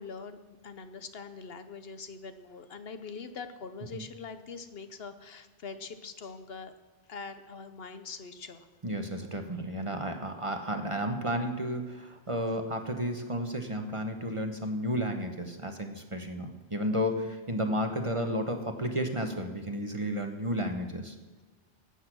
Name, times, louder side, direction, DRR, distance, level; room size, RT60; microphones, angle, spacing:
voice 1, 0.0-6.7 7.1-8.7, left 5 dB, 60° left, 10 dB, 1.0 m, -43 dB
voice 2, 8.8-21.2, equal, 30° right, 5 dB, 1.0 m, -32 dB
16.0 x 8.3 x 6.1 m, 1.3 s
omnidirectional pair, 1.2 m